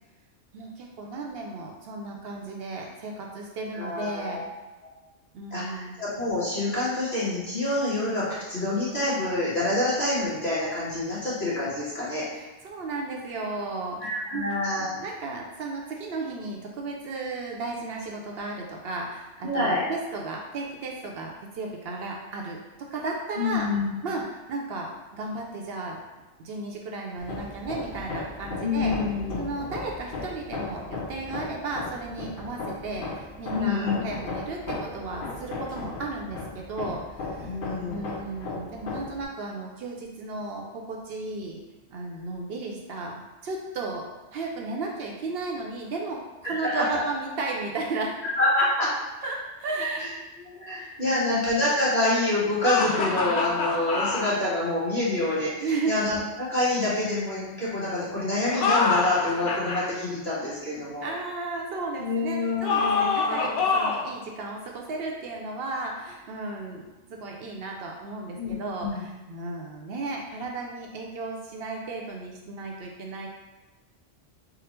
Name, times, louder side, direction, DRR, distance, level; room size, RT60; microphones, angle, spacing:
voice 1, 0.5-4.4 5.3-6.0 12.3-14.5 14.9-23.7 24.0-26.0 26.4-28.9 29.4-37.5 37.9-41.6 41.9-48.2 49.2-50.2 50.8-51.5 55.6-55.9 61.0-66.8 67.1-73.3, right 3 dB, 65° right, 0 dB, 0.8 m, -34 dB
voice 2, 3.7-4.4 5.5-12.2 14.0-14.9 19.4-19.8 23.3-23.9 28.6-29.5 33.5-34.0 37.5-38.0 46.4-47.0 48.4-48.9 50.0-50.1 50.4-61.1 62.0-63.1 68.3-68.5 68.8-69.0, left 2 dB, 35° left, -10 dB, 1.5 m, -27 dB
Hammer, 27.2-39.2, left 3 dB, 60° left, 0.7 m, -36 dB
sound 1, 52.6-54.3 58.4-59.9 62.6-64.1, left 4 dB, 85° left, 0.9 m, -25 dB
3.7 x 2.0 x 4.3 m, 1.1 s
omnidirectional pair, 1.2 m